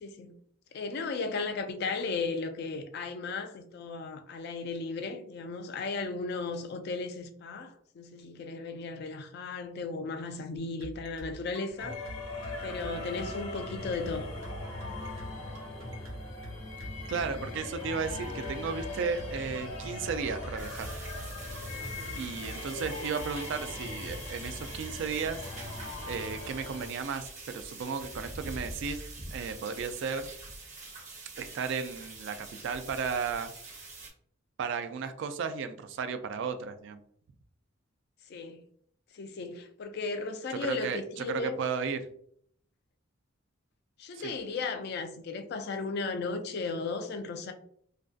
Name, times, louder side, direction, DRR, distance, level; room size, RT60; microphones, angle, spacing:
voice 1, 0.0-0.4 0.7-12.0 12.6-14.3 21.8-22.1 38.3-38.6 39.1-41.6 44.0-47.5, left 4 dB, 50° left, 0.3 m, -35 dB
sound 1, 10.8-24.6, equal, 80° right, 0.7 m, -44 dB
sound 2, 11.8-26.9, left 2 dB, 90° left, 0.8 m, -40 dB
voice 2, 17.1-20.9 22.2-25.4 26.1-29.0 29.3-30.3 31.4-33.5 34.6-37.0 40.5-42.1 44.1-44.3, right 5 dB, 60° right, 0.3 m, -34 dB
sound 3, 20.6-34.1, right 2 dB, 35° right, 0.7 m, -45 dB
2.5 x 2.2 x 2.3 m
head